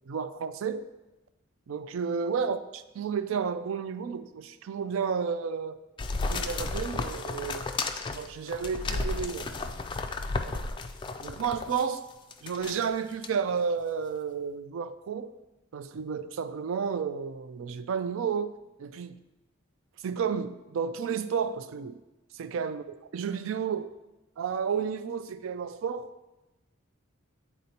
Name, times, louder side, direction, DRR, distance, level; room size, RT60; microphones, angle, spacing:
voice 1, 0.1-0.9 1.7-5.8 6.3-7.7 8.1-9.7 10.4-10.6 11.2-12.0 12.4-15.3 15.7-18.5 18.8-19.2 20.0-22.0 22.3-22.8 23.1-23.9 24.4-26.1, right 6 dB, 70° right, 0.4 m, -32 dB
sound 1, 6.0-11.9 12.3-12.8 13.2-13.3, left 3 dB, 25° left, 0.3 m, -33 dB
9.1 x 4.1 x 2.8 m
head